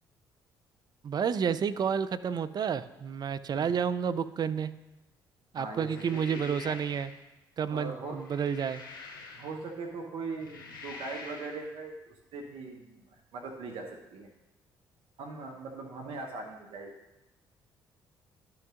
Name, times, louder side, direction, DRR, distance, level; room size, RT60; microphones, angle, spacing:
voice 1, 1.0-4.7 5.5-7.1 7.6-8.8, right 7 dB, 40° right, 14 dB, 0.4 m, -30 dB
voice 2, 5.5-6.7 7.7-8.2 9.4-14.3 15.2-16.9, right 3 dB, 55° right, 2 dB, 1.0 m, -40 dB
sound 1, 5.7-7.2 8.0-9.8 10.3-11.7, left 4 dB, 85° left, 0.9 m, -46 dB
11.5 x 5.9 x 2.5 m, 0.99 s
figure-of-eight pair, 45°, 11 cm